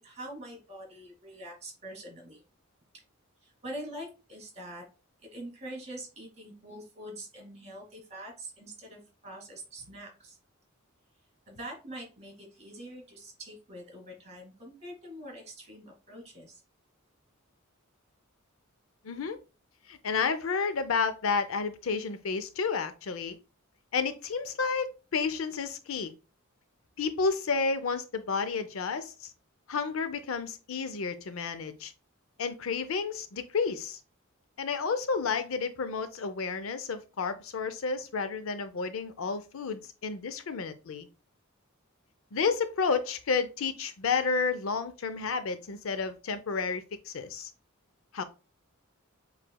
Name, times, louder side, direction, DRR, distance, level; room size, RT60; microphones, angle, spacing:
voice 1, 0.0-2.4 3.4-4.8 5.3-10.4 11.5-16.6, right 1 dB, 30° right, 2.4 m, -44 dB
voice 2, 19.0-19.4 19.9-23.4 23.9-26.1 27.0-29.3 29.7-31.9 32.4-34.0 34.6-41.1 42.3-47.5 48.1-48.2, left 5 dB, 70° left, 0.5 m, -31 dB
7.5 x 3.2 x 2.2 m
head